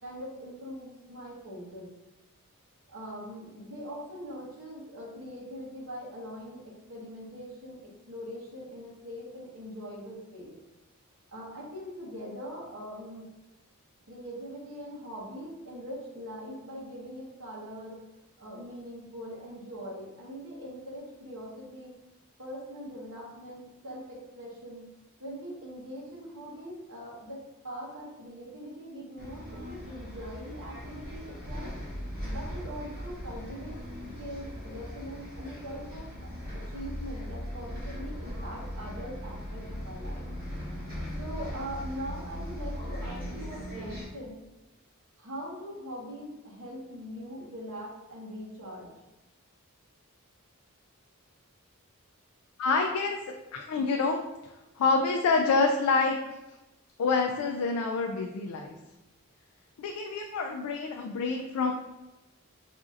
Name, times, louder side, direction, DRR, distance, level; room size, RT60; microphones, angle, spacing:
voice 1, 0.0-1.9 2.9-10.5 11.3-13.3 14.1-18.0 18.4-21.9 22.4-24.9 25.2-31.7 32.2-33.7 34.2-36.3 36.5-40.3 41.2-44.4 45.2-48.9, equal, 65° right, -4 dB, 1.1 m, -42 dB
Bus, 29.2-44.1, equal, 45° right, 1.2 m, -39 dB
voice 2, 52.6-53.2 53.5-56.2 57.0-58.8 59.8-61.7, left 4 dB, 80° left, 3 dB, 0.3 m, -27 dB
4.9 x 2.6 x 2.4 m, 1.0 s
head